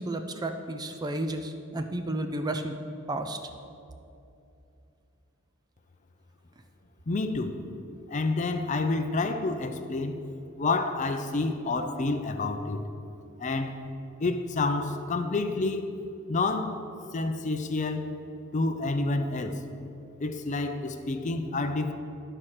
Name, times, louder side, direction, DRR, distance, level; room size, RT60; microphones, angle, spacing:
voice 1, 0.0-2.7 3.1-3.4, right 1 dB, 20° right, 6 dB, 0.4 m, -32 dB
voice 2, 7.1-7.6 8.1-10.2 10.6-12.8 13.4-13.7 14.2-15.9 16.3-16.8 17.1-18.1 18.5-19.6 20.2-21.9, left 3 dB, 35° left, 7 dB, 0.5 m, -28 dB
11.5 x 4.4 x 6.4 m, 2.7 s
head